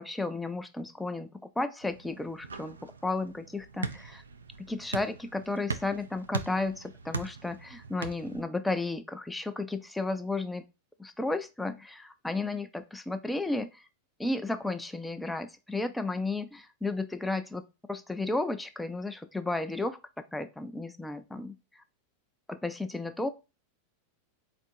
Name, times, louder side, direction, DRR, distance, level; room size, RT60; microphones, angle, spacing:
voice 1, 0.0-4.2 4.6-10.6 11.0-13.8 14.2-17.6 17.9-21.8 22.5-23.3, left 2 dB, 5° left, 8 dB, 0.5 m, -33 dB
sound 1, 1.8-8.4, right 5 dB, 85° right, 0.4 m, -40 dB
4.3 x 2.6 x 4.0 m, 0.28 s
figure-of-eight pair, 90°, 0 cm